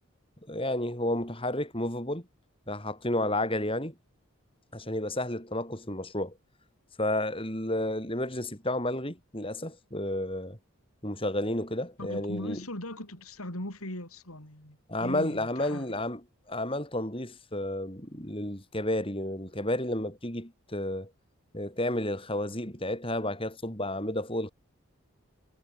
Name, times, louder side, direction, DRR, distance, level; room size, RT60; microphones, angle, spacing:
voice 1, 0.5-2.2 2.7-3.9 4.7-6.3 7.0-10.6 11.0-12.6 14.9-21.1 21.5-24.5, left 1 dB, 25° left, 7.5 m, -31 dB
voice 2, 12.0-15.9, left 1 dB, 80° left, 6.3 m, -39 dB
head